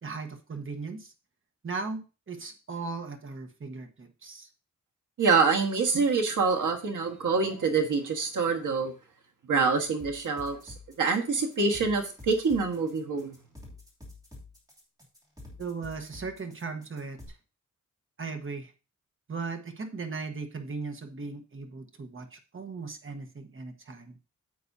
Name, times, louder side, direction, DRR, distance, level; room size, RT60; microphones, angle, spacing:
voice 1, 0.0-1.1 1.6-4.5 15.6-17.4 18.2-18.7 19.3-24.2, right 4 dB, 40° right, 6 dB, 1.2 m, -37 dB
voice 2, 5.2-8.9 9.5-13.4, right 4 dB, 75° right, 2 dB, 1.5 m, -26 dB
sound 1, 10.0-17.3, left 2 dB, 10° right, 2.9 m, -48 dB
9.6 x 7.8 x 2.7 m, 0.32 s
wide cardioid pair, 140°, 31 cm